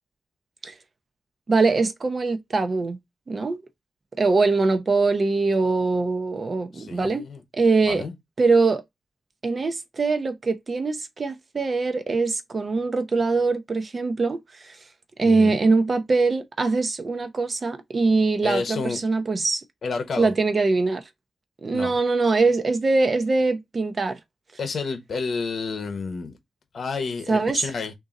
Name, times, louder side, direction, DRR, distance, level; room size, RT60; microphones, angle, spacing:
voice 1, 1.5-3.0 3.3-3.6 4.2-7.2 7.5-8.0 8.4-8.8 9.4-14.8 15.2-19.6 20.2-21.0 21.6-24.2 27.3-27.7, right 3 dB, 40° right, 0.6 m, -22 dB
voice 2, 6.7-7.4 7.9-8.1 15.2-15.6 18.4-19.0 19.8-20.3 21.7-21.9 24.6-26.4 26.7-27.9, left 4 dB, 60° left, 0.8 m, -30 dB
3.7 x 2.6 x 3.9 m
wide cardioid pair, 150°, 0 cm